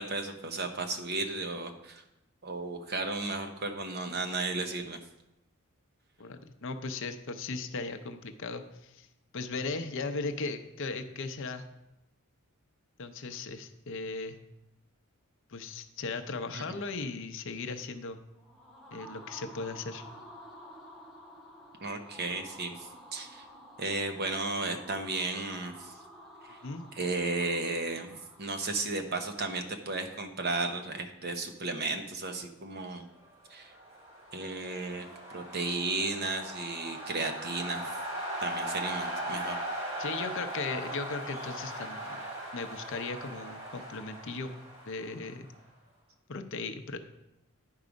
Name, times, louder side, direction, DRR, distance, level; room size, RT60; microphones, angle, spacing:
voice 1, 0.0-2.0 2.4-5.0 16.5-16.6 21.8-22.7 23.1-23.4 23.8-25.9 26.5-26.6 27.0-33.0 33.5-33.7 34.3-35.1 35.3-37.9 38.4-39.6, right 3 dB, 50° right, 6 dB, 0.9 m, -34 dB
voice 2, 6.2-9.1 9.3-11.7 13.0-14.4 15.5-18.2 18.9-20.0 26.6-26.9 40.0-42.2 42.5-44.5 44.9-45.5 46.3-47.0, left 3 dB, 60° left, 8 dB, 0.7 m, -37 dB
sound 1, 18.3-29.2, equal, ahead, 1.1 m, -51 dB
sound 2, 33.6-45.6, right 1 dB, 30° right, 2.1 m, -39 dB
10.5 x 4.7 x 5.2 m, 0.90 s
head